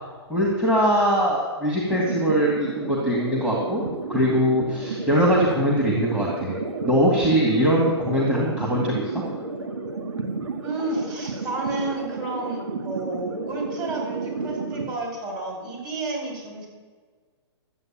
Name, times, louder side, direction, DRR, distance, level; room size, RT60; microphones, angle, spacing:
voice 1, 0.3-3.8 4.1-6.6 6.8-9.2, equal, 5° right, -5 dB, 2.2 m, -22 dB
sound 1, 1.9-14.9, right 4 dB, 85° right, 1.8 m, -31 dB
voice 2, 10.6-16.7, right 2 dB, 25° right, -1 dB, 5.1 m, -31 dB
13.0 x 8.3 x 8.9 m, 1.5 s
hypercardioid pair, 150°, 14 cm